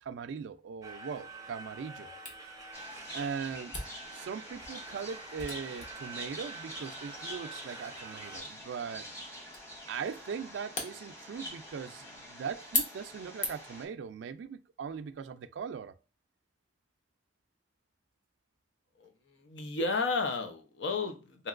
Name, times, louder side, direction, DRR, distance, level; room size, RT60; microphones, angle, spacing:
voice 1, 0.0-2.1 3.1-3.8 4.1-9.1 9.9-16.0, right 6 dB, 85° right, 0.3 m, -40 dB
sound 1, 0.8-8.4, right 3 dB, 20° right, 0.5 m, -47 dB
Camera, 2.2-13.8, left 2 dB, 45° left, 0.9 m, -41 dB
sound 2, 2.7-13.8, equal, 15° left, 0.9 m, -46 dB
voice 2, 19.0-21.5, left 3 dB, 80° left, 0.6 m, -33 dB
3.0 x 2.9 x 2.4 m
head